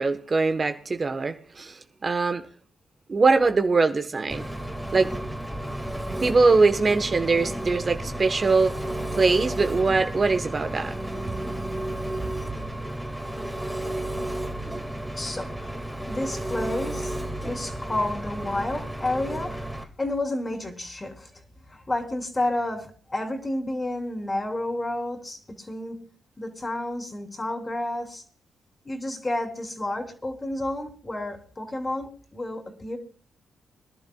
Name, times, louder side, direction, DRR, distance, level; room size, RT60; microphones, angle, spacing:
voice 1, 0.0-2.4 3.1-4.4 4.9-5.1 6.2-8.7 9.2-10.9, right 3 dB, 40° right, 1.2 m, -22 dB
Engine, 4.3-19.8, right 1 dB, ahead, 2.1 m, -32 dB
voice 2, 14.1-17.2 17.4-19.7 20.0-21.3 21.7-26.0 26.4-28.2 28.9-33.0, left 1 dB, 30° left, 3.4 m, -31 dB
24.0 x 11.5 x 2.4 m
hypercardioid pair, 40°, 0 cm